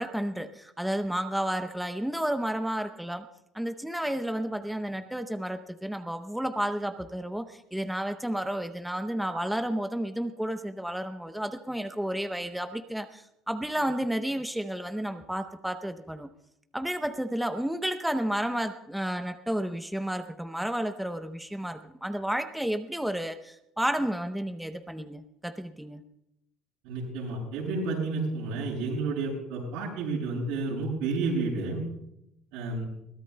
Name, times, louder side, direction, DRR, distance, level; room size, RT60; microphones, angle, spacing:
voice 1, 0.0-3.2 3.5-16.3 16.7-26.0, right 1 dB, ahead, 8 dB, 0.6 m, -31 dB
voice 2, 26.8-31.8 32.5-32.9, right 3 dB, 85° right, -3 dB, 7.1 m, -31 dB
22.0 x 16.5 x 2.2 m, 0.81 s
cardioid pair, 145°, 0 cm